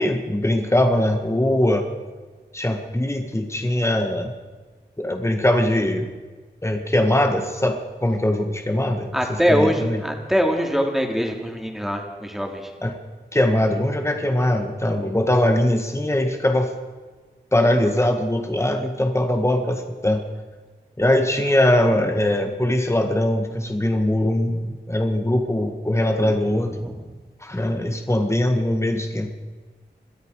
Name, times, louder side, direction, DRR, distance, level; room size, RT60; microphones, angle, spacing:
voice 1, 0.0-1.9 2.5-4.3 5.0-6.1 6.6-10.0 12.8-13.0 13.3-16.7 17.5-20.2 21.0-26.9 27.4-29.3, left 1 dB, 15° left, 4 dB, 1.8 m, -21 dB
voice 2, 9.1-12.7 26.2-26.3 26.8-26.9, equal, ahead, 2 dB, 3.1 m, -23 dB
22.0 x 13.0 x 5.0 m, 1.4 s
cardioid pair, 50°, 18 cm